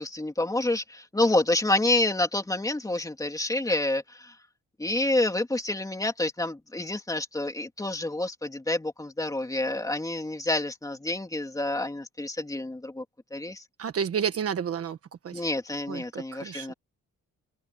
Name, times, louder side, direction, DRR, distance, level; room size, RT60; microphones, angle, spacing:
voice 1, 0.0-4.3 4.8-13.0 13.3-13.6 15.3-16.7, left 2 dB, 10° left, 3.1 m, -28 dB
voice 2, 13.8-15.0 15.2-15.4 15.9-16.7, right 7 dB, 45° right, 1.3 m, -31 dB
open air
wide cardioid pair, 165°, 31 cm